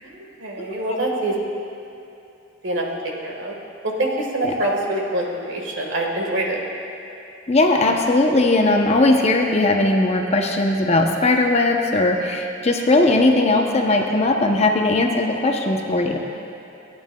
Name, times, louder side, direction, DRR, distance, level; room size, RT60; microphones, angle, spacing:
voice 1, 0.0-1.4 2.6-2.8 3.2-3.5 3.8-6.6, right 1 dB, 75° right, -1 dB, 1.5 m, -25 dB
voice 2, 7.5-16.2, left 2 dB, 35° left, 2 dB, 0.7 m, -18 dB
16.0 x 9.3 x 2.3 m, 2.8 s
head